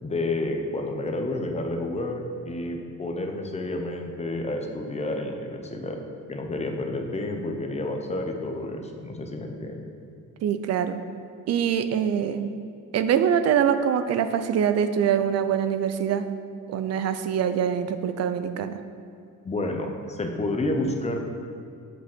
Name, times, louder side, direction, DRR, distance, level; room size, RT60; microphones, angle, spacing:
voice 1, 0.0-6.0 6.3-9.9 19.4-21.2, left 2 dB, 20° left, 3 dB, 0.9 m, -30 dB
voice 2, 10.4-11.0 11.5-12.6 12.9-16.3 16.7-18.8, right 8 dB, 55° right, 10 dB, 0.7 m, -24 dB
8.6 x 7.5 x 6.2 m, 2.5 s
cardioid pair, 165°, 31 cm